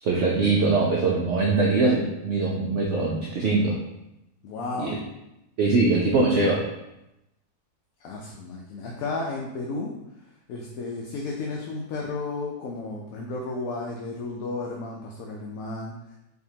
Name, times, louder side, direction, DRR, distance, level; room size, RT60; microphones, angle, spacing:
voice 1, 0.0-3.8 4.8-5.0 5.6-6.7, right 3 dB, 70° right, -3 dB, 0.7 m, -22 dB
voice 2, 4.4-5.0 8.0-9.9 10.5-16.0, left 3 dB, 70° left, -1 dB, 0.9 m, -33 dB
4.5 x 2.8 x 2.7 m, 0.89 s
omnidirectional pair, 1.7 m